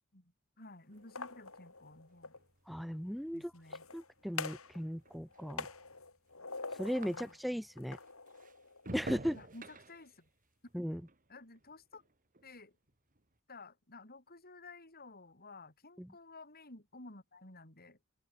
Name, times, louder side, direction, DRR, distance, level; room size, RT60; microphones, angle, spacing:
voice 1, 0.1-2.4 3.3-3.9 7.1-7.4 9.3-10.3 10.6-10.7 11.3-12.0 12.4-12.8 13.5-18.0, left 2 dB, 45° left, 6.8 m, -54 dB
sound 1, 0.9-7.7 8.0-12.6 12.9-13.4, right 2 dB, 40° right, 3.2 m, -52 dB
sound 2, 1.0-2.4 3.6-4.8 5.1-7.4 7.8-9.1, left 4 dB, 80° left, 7.3 m, -45 dB
voice 2, 2.7-3.5 3.9-5.7 6.7-8.0 8.9-9.4 10.7-11.0 16.0-16.1, equal, ahead, 1.1 m, -37 dB
open air
head